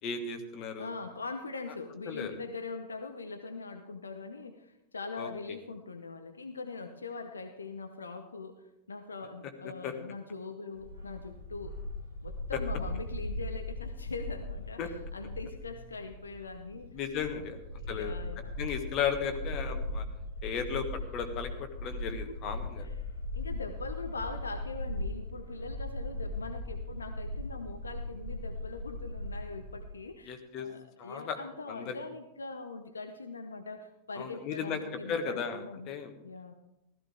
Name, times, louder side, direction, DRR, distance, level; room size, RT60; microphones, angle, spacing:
voice 1, 0.0-0.9 2.1-2.3 5.2-5.3 9.8-9.9 14.8-14.9 16.9-17.6 17.9-18.1 18.6-20.0 20.4-20.9 21.1-22.9 30.2-30.7 31.0-31.4 31.7-32.0 34.1-34.8 35.1-36.1, left 7 dB, 40° left, 6 dB, 1.6 m, -35 dB
voice 2, 0.8-11.8 12.2-17.0 17.3-18.5 22.1-22.3 22.8-22.9 23.3-35.9 36.2-36.5, left 3 dB, 75° left, 7 dB, 0.8 m, -42 dB
Bark, 10.7-29.9, left 1 dB, 80° right, 3.6 m, -39 dB
15.5 x 13.5 x 3.6 m, 0.87 s
figure-of-eight pair, 90°, 0 cm